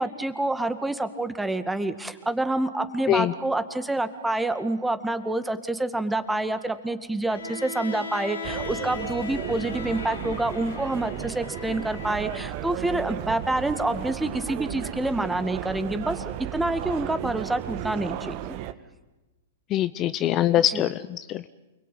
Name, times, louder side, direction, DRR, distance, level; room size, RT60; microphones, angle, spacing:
voice 1, 0.0-18.5 20.7-20.8, right 2 dB, 5° right, 10 dB, 2.1 m, -27 dB
Bowed string instrument, 7.3-12.5, left 5 dB, 80° left, 3.6 m, -38 dB
sound 1, 8.4-18.7, right 13 dB, 45° right, 1.5 m, -35 dB
voice 2, 19.7-21.5, left 12 dB, 35° left, 13 dB, 0.8 m, -23 dB
29.0 x 22.0 x 9.4 m, 1.1 s
hypercardioid pair, 110°, 0 cm